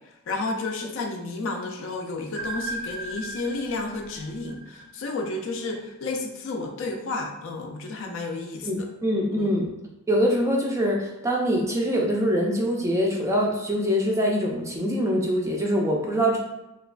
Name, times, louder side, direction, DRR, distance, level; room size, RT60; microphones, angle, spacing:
voice 1, 0.3-8.7 9.3-9.5, left 3 dB, 60° left, 3 dB, 0.4 m, -31 dB
sound 1, 2.4-5.3, right 2 dB, 85° right, 0.6 m, -36 dB
voice 2, 8.6-9.7 10.1-16.4, equal, 15° right, -2 dB, 0.4 m, -24 dB
3.0 x 2.1 x 2.4 m, 0.94 s
head